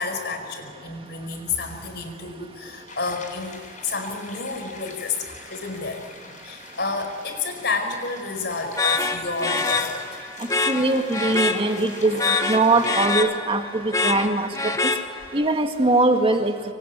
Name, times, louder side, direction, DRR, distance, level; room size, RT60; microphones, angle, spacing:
voice 1, 0.0-6.0 6.4-10.2, left 4 dB, 60° left, 5 dB, 5.1 m, -30 dB
sound 1, 2.9-13.1, left 3 dB, 40° left, 7.5 m, -42 dB
sound 2, 8.8-15.5, left 3 dB, 20° left, 1.2 m, -26 dB
voice 2, 10.7-14.9 15.3-16.6, right 2 dB, 30° right, 4 dB, 2.1 m, -21 dB
26.5 x 23.5 x 9.4 m, 2.1 s
head